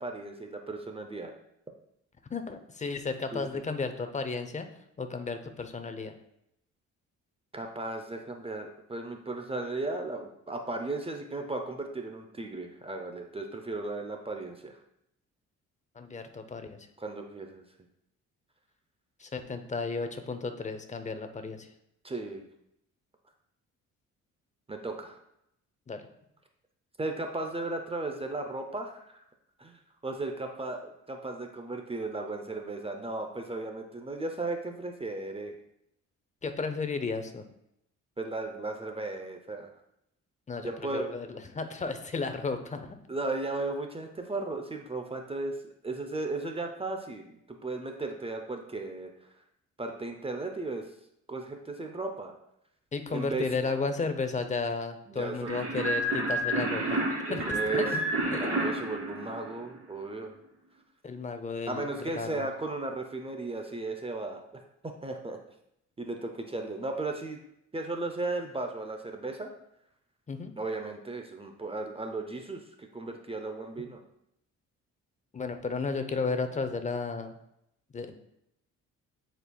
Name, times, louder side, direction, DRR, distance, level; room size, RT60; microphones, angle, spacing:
voice 1, 0.0-1.3 3.3-3.5 7.5-14.8 17.0-17.6 22.0-22.5 24.7-25.2 27.0-29.2 29.6-35.6 38.2-39.7 40.6-41.1 43.1-45.5 45.8-49.1 49.8-50.9 51.3-52.3 53.1-53.4 55.1-55.8 57.3-57.9 58.4-60.4 61.7-65.4 66.0-67.4 67.7-69.5 70.6-74.0, right 2 dB, 20° right, 3 dB, 0.7 m, -35 dB
voice 2, 2.3-4.7 5.0-6.1 16.0-16.8 19.2-21.7 25.9-26.0 36.4-37.4 40.5-43.0 52.9-58.0 58.3-58.6 61.0-62.5 70.3-70.5 75.3-77.4 77.9-78.2, left 4 dB, 25° left, 7 dB, 0.7 m, -34 dB
sound 1, 55.5-59.9, right 1 dB, 50° right, 2.5 m, -30 dB
9.5 x 4.5 x 2.3 m, 0.79 s
cardioid pair, 90°, 30 cm